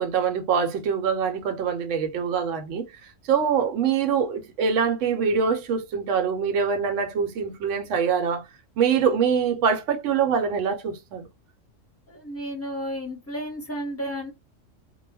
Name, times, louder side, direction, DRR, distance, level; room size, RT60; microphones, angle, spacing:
voice 1, 0.0-2.8 3.3-8.4 8.8-11.3, right 6 dB, 75° right, 0.9 m, -24 dB
voice 2, 12.1-14.3, equal, 15° left, 0.8 m, -32 dB
2.3 x 2.1 x 3.2 m
omnidirectional pair, 1.3 m